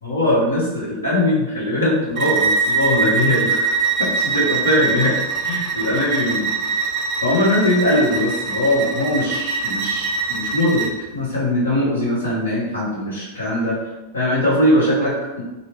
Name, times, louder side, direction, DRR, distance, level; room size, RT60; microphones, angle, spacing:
voice 1, 0.0-3.7 4.0-5.1 5.4-6.5 7.2-13.8 14.1-15.4, left 1 dB, 75° left, -6 dB, 1.0 m, -20 dB
Bowed string instrument, 2.2-11.0, right 5 dB, 35° right, 0.3 m, -23 dB
2.7 x 2.0 x 3.1 m, 1.1 s
figure-of-eight pair, 90°, 0 cm